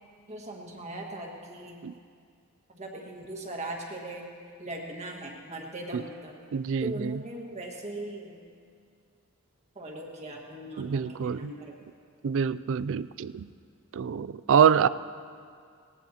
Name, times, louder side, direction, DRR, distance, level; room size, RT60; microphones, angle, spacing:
voice 1, 0.3-1.8 2.7-4.3 4.6-6.4 6.8-8.4 9.8-11.7, right 1 dB, 30° right, 0 dB, 1.8 m, -39 dB
voice 2, 6.5-7.2 10.8-11.5 12.2-13.5 13.9-14.9, right 7 dB, 60° right, 16 dB, 0.4 m, -25 dB
19.0 x 19.0 x 2.9 m, 2.2 s
head